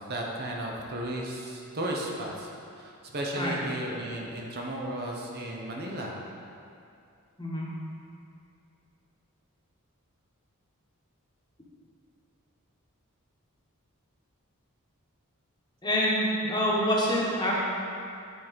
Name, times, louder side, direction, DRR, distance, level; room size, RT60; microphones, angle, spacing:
voice 1, 0.0-2.5 2.8-6.1, right 1 dB, 45° right, -1 dB, 0.9 m, -34 dB
voice 2, 15.8-17.6, equal, 20° left, -5 dB, 1.2 m, -26 dB
9.4 x 4.5 x 4.1 m, 2.5 s
head